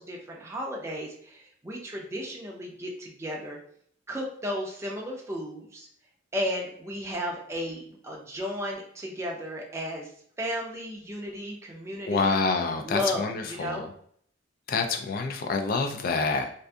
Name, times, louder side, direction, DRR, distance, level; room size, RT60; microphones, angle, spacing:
voice 1, 0.0-3.6 4.1-5.9 6.3-10.1 10.4-12.4 12.8-13.9, equal, 15° right, -1 dB, 0.4 m, -34 dB
voice 2, 12.1-13.9 14.7-16.5, left 4 dB, 50° left, 5 dB, 0.3 m, -27 dB
2.5 x 2.5 x 2.2 m, 0.62 s
head